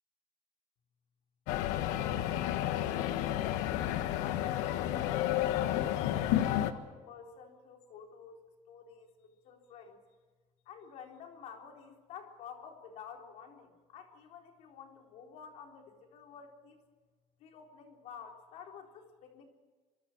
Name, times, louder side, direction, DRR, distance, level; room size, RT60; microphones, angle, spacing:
sound 1, 1.5-6.7, left 12 dB, 90° left, 1.4 m, -31 dB
voice 1, 1.8-4.7 5.0-10.0 10.7-16.8 17.4-19.4, left 6 dB, 60° left, 2 dB, 4.1 m, -51 dB
26.0 x 24.0 x 4.7 m, 1.4 s
cardioid pair, 155°, 12 cm